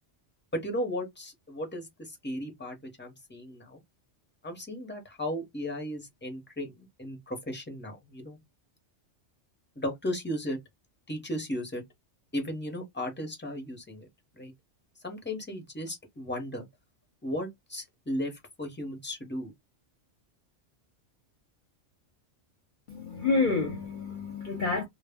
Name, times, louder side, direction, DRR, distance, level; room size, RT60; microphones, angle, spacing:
voice 1, 0.5-3.8 4.4-8.4 9.8-10.6 11.1-11.8 12.3-14.1 14.3-14.5 15.0-16.7 17.2-19.5, equal, 10° left, 0.5 m, -35 dB
voice 2, 22.9-24.8, left 4 dB, 50° left, 0.7 m, -28 dB
2.1 x 2.1 x 3.3 m
omnidirectional pair, 1.3 m